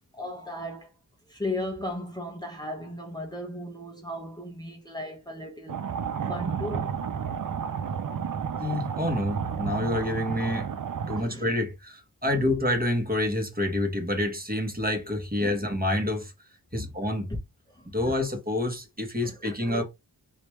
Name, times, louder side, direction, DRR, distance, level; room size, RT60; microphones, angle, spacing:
voice 1, 0.2-0.9 1.3-5.8 6.3-7.0 11.1-11.4 12.2-12.3 15.4-15.5 16.7-16.9 17.7-18.1 19.2-19.8, left 1 dB, 10° left, 0.8 m, -36 dB
sound 1, 5.7-11.2, right 7 dB, 55° right, 0.6 m, -31 dB
voice 2, 8.5-10.7 11.1-16.3 16.7-17.3 17.9-19.8, left 1 dB, 20° right, 1.3 m, -28 dB
3.4 x 2.8 x 3.2 m
cardioid pair, 55°, 40 cm